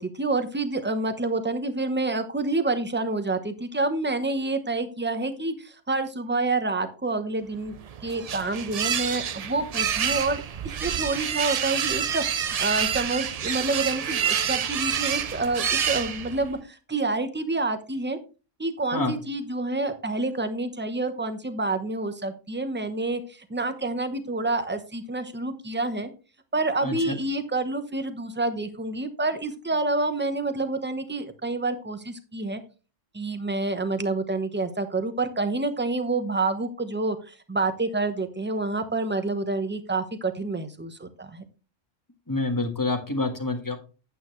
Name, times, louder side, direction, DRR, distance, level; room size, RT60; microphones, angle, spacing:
voice 1, 0.0-7.7 8.0-10.4 10.8-18.2 18.6-26.1 26.5-32.6 33.1-41.4, right 3 dB, 10° right, 9 dB, 0.8 m, -28 dB
sound 1, 7.7-16.6, right 8 dB, 75° right, 0.3 m, -28 dB
voice 2, 26.8-27.1 42.3-43.8, left 2 dB, 15° left, 5 dB, 1.4 m, -27 dB
9.2 x 8.5 x 3.1 m, 0.33 s
omnidirectional pair, 1.3 m